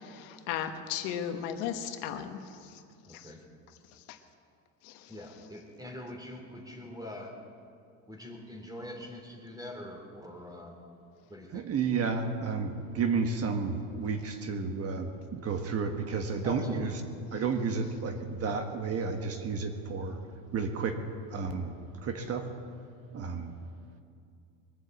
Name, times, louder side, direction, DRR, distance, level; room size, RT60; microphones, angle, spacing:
voice 1, 0.0-2.8 3.1-3.3 4.1-4.2 4.8-5.1, left 9 dB, 85° left, 7 dB, 1.3 m, -36 dB
voice 2, 3.0-3.4 5.1-7.3 8.1-10.7 11.3-11.6 16.4-16.9, left 1 dB, 10° right, 1 dB, 3.4 m, -43 dB
voice 3, 11.5-17.0 17.3-20.2 20.5-21.0 21.3-22.5 23.1-23.5, right 5 dB, 40° right, 6 dB, 1.3 m, -32 dB
21.5 x 7.8 x 8.0 m, 2.4 s
cardioid pair, 120°, 36 cm